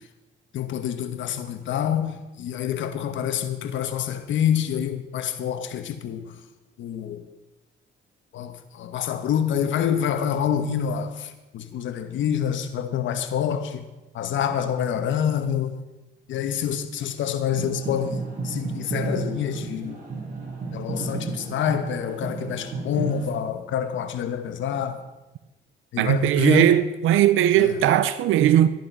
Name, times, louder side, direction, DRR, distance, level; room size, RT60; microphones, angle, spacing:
voice 1, 0.5-2.1 2.4-6.2 6.8-7.2 8.3-11.1 11.5-13.8 14.1-15.7 16.3-18.2 18.4-19.9 20.7-25.0 25.9-26.7 27.6-27.7, left 9 dB, 75° left, 1.3 m, -26 dB
sound 1, 17.5-23.3, right 3 dB, 40° right, 5.9 m, -32 dB
voice 2, 26.0-28.7, right 11 dB, 85° right, 0.7 m, -18 dB
13.5 x 11.0 x 5.5 m
cardioid pair, 90°, 20 cm